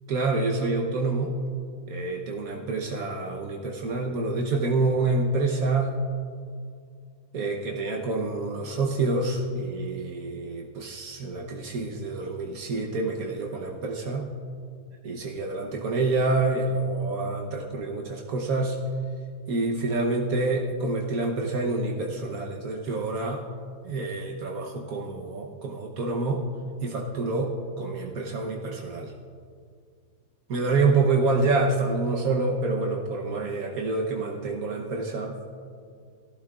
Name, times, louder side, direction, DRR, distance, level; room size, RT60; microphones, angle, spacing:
voice 1, 0.1-1.3 1.9-5.9 7.3-14.3 15.0-18.8 19.5-23.5 23.8-26.4 26.8-29.1 30.5-35.5, right 3 dB, 75° right, 0 dB, 1.4 m, -27 dB
18.0 x 14.5 x 2.4 m, 2.2 s
omnidirectional pair, 1.6 m